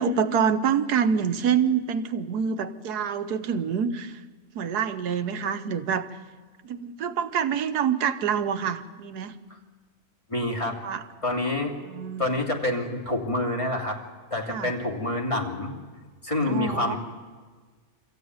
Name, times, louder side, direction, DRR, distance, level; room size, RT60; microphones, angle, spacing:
voice 1, 0.0-4.2 4.5-6.1 6.6-9.4 10.7-11.0 11.8-12.2 14.5-14.7 16.5-17.0, right 7 dB, 90° right, 9 dB, 1.5 m, -26 dB
voice 2, 10.3-10.8 11.2-11.7 12.2-14.0 14.3-15.7 16.2-17.0, left 1 dB, 20° left, -1 dB, 3.0 m, -27 dB
25.5 x 14.5 x 9.5 m, 1.4 s
omnidirectional pair, 1.6 m